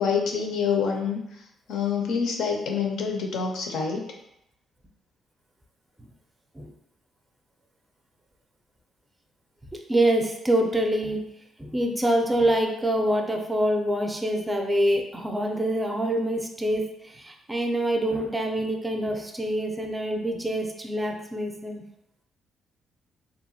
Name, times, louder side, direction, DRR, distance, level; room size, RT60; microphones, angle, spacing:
voice 1, 0.0-1.4 1.7-4.1, left 6 dB, 80° left, 2 dB, 0.5 m, -26 dB
voice 2, 9.9-11.2 11.6-21.8, right 1 dB, 15° right, 3 dB, 0.4 m, -25 dB
2.7 x 2.2 x 2.7 m, 0.81 s
cardioid pair, 90°, 0 cm